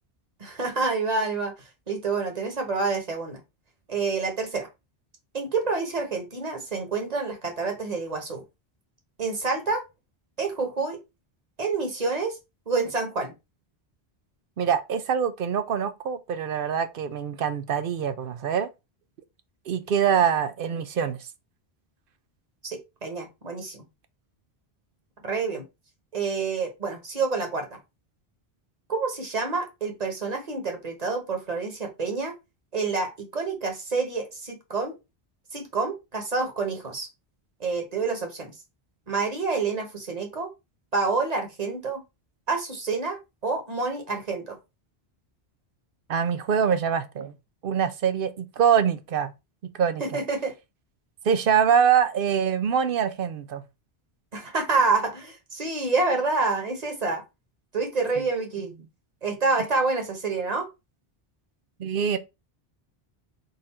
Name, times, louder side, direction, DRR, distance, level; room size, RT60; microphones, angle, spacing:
voice 1, 0.4-1.5 1.9-3.4 3.9-4.7 5.3-8.4 9.2-9.8 10.4-11.0 11.6-12.4 12.7-13.3 22.7-23.8 25.2-25.7 26.1-27.8 28.9-32.3 32.7-34.9 35.5-37.1 37.6-38.5 39.1-40.5 40.9-42.0 42.5-44.6 50.0-50.5 54.3-57.2 57.7-58.7 59.2-60.7, right 4 dB, 40° right, 1.2 m, -28 dB
voice 2, 14.6-18.7 19.7-21.2 46.1-47.3 47.6-49.3 49.7-50.2 51.2-53.6 61.8-62.2, right 7 dB, 65° right, 0.7 m, -24 dB
4.0 x 2.5 x 4.2 m
omnidirectional pair, 1.1 m